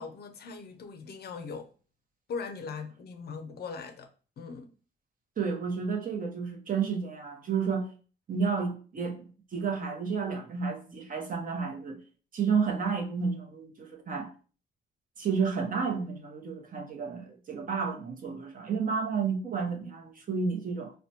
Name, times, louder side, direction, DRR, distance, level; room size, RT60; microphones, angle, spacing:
voice 1, 0.0-1.7 2.3-4.1 4.4-4.7 19.2-19.3, left 5 dB, 55° left, 0.5 m, -40 dB
voice 2, 5.4-7.9 8.3-12.0 12.3-14.3 15.2-20.9, right 5 dB, 45° right, 0.8 m, -31 dB
4.1 x 2.2 x 2.8 m
cardioid pair, 90°, 20 cm